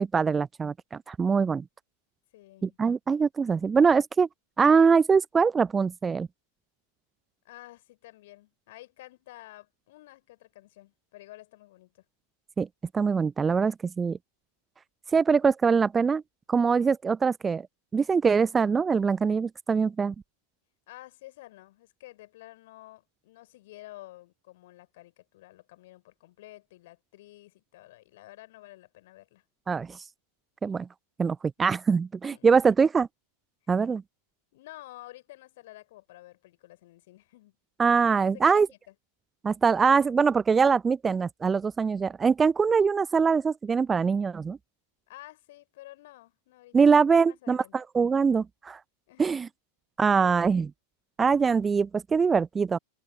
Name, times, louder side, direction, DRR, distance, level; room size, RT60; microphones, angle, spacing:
voice 1, 0.0-1.6 2.6-4.3 4.6-6.3 12.6-12.7 12.9-14.2 15.1-16.2 16.5-17.7 17.9-20.1 29.7-30.0 30.6-30.9 31.2-33.1 33.7-34.0 37.8-38.7 39.4-44.6 46.7-48.8 49.2-49.5 50.0-50.7 51.2-52.8, right 5 dB, 15° right, 0.6 m, -23 dB
voice 2, 2.3-2.8 7.4-12.0 20.9-29.4 31.6-31.8 32.2-32.6 34.5-37.6 38.2-38.9 45.1-47.7 49.1-49.5 50.2-50.5, left 17 dB, 55° left, 4.4 m, -50 dB
figure-of-eight pair, 90°, 0 cm